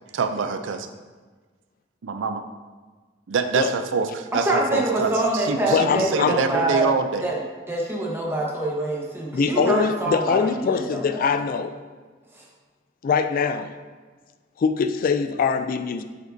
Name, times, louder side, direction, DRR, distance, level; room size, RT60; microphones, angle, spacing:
voice 1, 0.1-0.9 2.0-2.4 3.3-7.3, right 5 dB, 85° right, 7 dB, 0.5 m, -25 dB
voice 2, 4.5-6.9 7.2-7.4 7.7-10.6 10.9-11.3 12.3-12.4, right 2 dB, 15° right, -3 dB, 1.1 m, -25 dB
voice 3, 5.7-6.4 9.3-11.7 13.0-13.7 14.6-16.0, left 5 dB, 50° left, 9 dB, 0.3 m, -23 dB
8.0 x 4.9 x 2.7 m, 1.4 s
head